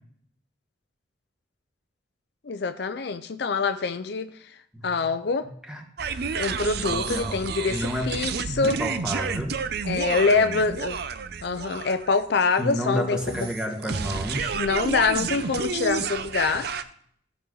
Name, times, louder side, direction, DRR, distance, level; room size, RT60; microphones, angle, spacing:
voice 1, 2.4-4.3 4.8-5.5 6.4-8.8 9.9-11.0 11.4-13.5 14.5-16.7, left 4 dB, 55° left, 0.5 m, -25 dB
voice 2, 4.7-5.1 5.4-5.8 6.8-8.1 8.6-9.6 12.6-14.6, equal, 5° right, 1.4 m, -31 dB
sound 1, 6.0-16.8, right 5 dB, 55° right, 0.6 m, -30 dB
15.0 x 6.2 x 3.9 m
head